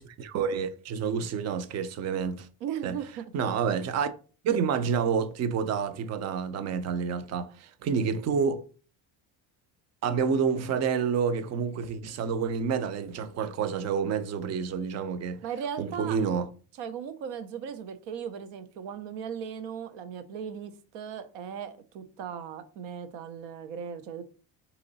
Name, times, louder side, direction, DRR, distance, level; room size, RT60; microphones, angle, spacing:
voice 1, 0.0-2.5 2.8-3.0 3.3-4.1 4.4-8.6 10.0-15.4 15.8-16.5, right 6 dB, 40° right, 0.4 m, -28 dB
voice 2, 2.6-3.3 15.4-16.2 16.8-24.2, right 8 dB, 85° right, 0.8 m, -37 dB
3.8 x 3.0 x 3.9 m
cardioid pair, 150°, 44 cm